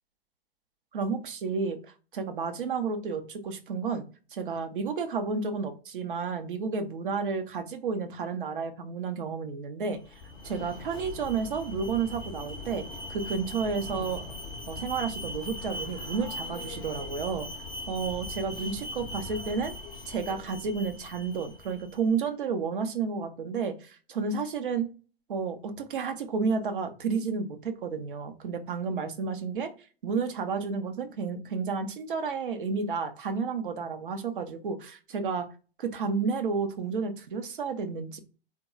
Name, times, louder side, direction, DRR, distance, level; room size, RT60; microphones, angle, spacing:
voice 1, 0.9-1.8 2.1-4.0 4.3-14.2 14.7-17.5 17.9-19.7 20.1-24.9 25.3-29.7 30.0-35.5 35.8-38.2, right 5 dB, 55° right, 7 dB, 0.7 m, -31 dB
Alarm, 10.0-22.0, left 2 dB, 15° left, 0.5 m, -40 dB
3.7 x 2.1 x 3.0 m, 0.35 s
figure-of-eight pair, 105°, 31 cm